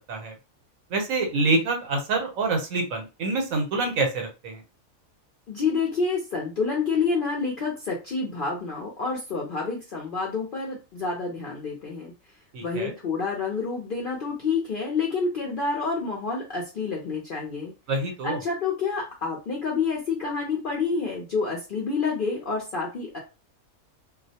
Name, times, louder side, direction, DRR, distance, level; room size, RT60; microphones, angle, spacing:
voice 1, 0.9-4.6 12.5-12.9 17.9-18.4, right 3 dB, 75° right, 3 dB, 1.1 m, -26 dB
voice 2, 5.5-12.1 12.6-17.7 18.2-23.2, left 4 dB, 60° left, -2 dB, 0.5 m, -28 dB
2.4 x 2.0 x 2.7 m, 0.29 s
omnidirectional pair, 1.4 m